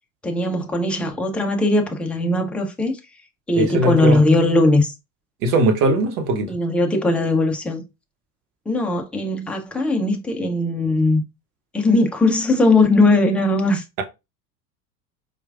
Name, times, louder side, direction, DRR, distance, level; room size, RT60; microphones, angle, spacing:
voice 1, 0.2-3.0 3.5-4.9 6.5-7.8 8.7-11.2 11.7-14.0, left 2 dB, 5° left, 0.4 m, -19 dB
voice 2, 3.6-4.2 5.4-6.5, right 2 dB, 60° right, 1.1 m, -19 dB
4.4 x 2.4 x 2.4 m
hypercardioid pair, 80°, 49 cm